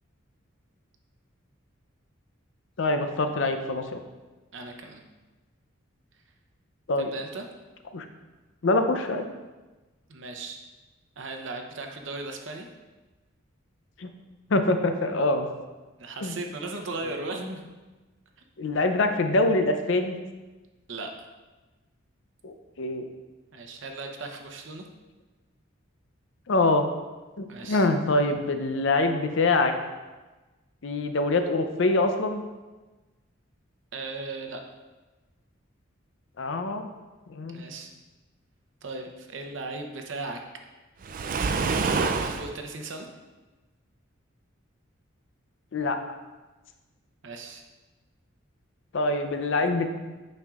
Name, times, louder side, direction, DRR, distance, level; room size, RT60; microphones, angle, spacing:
voice 1, 2.8-4.0 6.9-7.1 7.9-8.1 8.6-9.2 14.0-14.1 14.5-15.5 16.2-16.4 18.6-20.2 22.4-23.0 26.5-26.9 27.4-29.7 30.8-32.4 36.4-36.9 37.3-37.6 45.7-46.0 48.9-49.9, left 2 dB, 65° left, 7 dB, 0.5 m, -24 dB
voice 2, 4.5-5.0 7.0-7.5 10.1-10.6 11.2-12.7 16.0-17.7 20.9-21.3 23.5-24.9 27.5-27.9 33.9-34.6 37.5-37.9 38.8-40.4 41.9-43.1 47.2-47.6, right 3 dB, 65° right, 4 dB, 0.7 m, -37 dB
Waves surf, 41.0-42.5, right 4 dB, 45° right, 0.3 m, -26 dB
8.8 x 5.3 x 2.4 m, 1.2 s
head